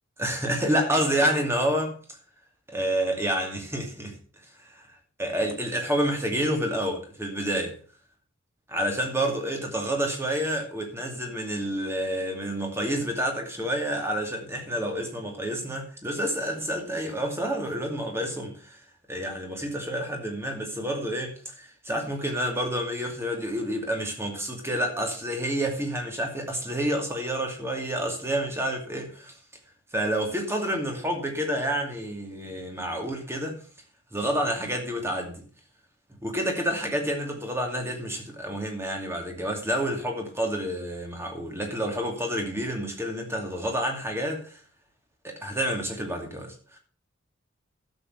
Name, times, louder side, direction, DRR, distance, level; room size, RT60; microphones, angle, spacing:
voice 1, 0.2-1.9 2.7-4.1 4.6-4.9 5.2-7.8 8.7-18.8 19.1-29.3 29.9-33.6 34.1-35.4 36.2-44.6 45.2-46.8, right 1 dB, 15° right, 2.5 m, -29 dB
12.0 x 7.2 x 5.7 m
head